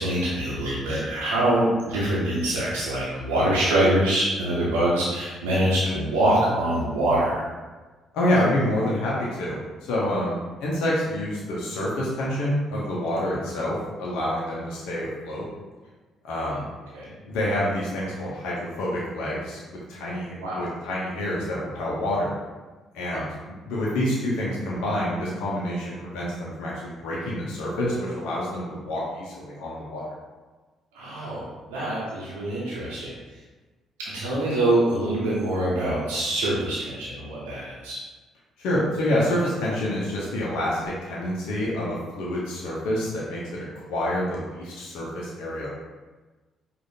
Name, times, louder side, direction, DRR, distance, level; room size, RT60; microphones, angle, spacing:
voice 1, 0.0-7.3 16.9-17.1 20.4-20.6 23.1-23.2 31.0-33.1 34.1-38.0, right 1 dB, 85° right, -7 dB, 0.7 m, -24 dB
voice 2, 8.1-15.4 16.2-16.7 17.2-22.3 22.9-30.0 38.6-45.7, left 1 dB, 70° left, -6 dB, 0.7 m, -27 dB
4.9 x 2.5 x 2.7 m, 1.3 s
hypercardioid pair, 50°, 0 cm